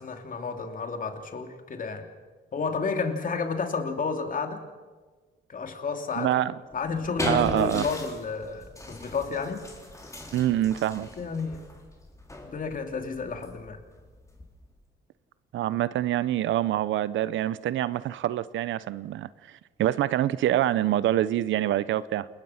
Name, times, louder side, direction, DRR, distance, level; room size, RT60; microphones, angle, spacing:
voice 1, 0.0-2.1 2.5-4.6 5.5-6.4 6.7-9.7 11.2-11.6 12.4-13.8, left 5 dB, 45° left, 5 dB, 2.8 m, -31 dB
voice 2, 6.2-6.5 7.2-7.8 10.3-11.1 15.5-19.3 19.8-22.3, right 12 dB, 75° right, 17 dB, 0.8 m, -25 dB
sound 1, 6.7-14.8, left 1 dB, 15° left, 4.0 m, -38 dB
28.5 x 20.5 x 5.8 m, 1.4 s
cardioid pair, 90°, 20 cm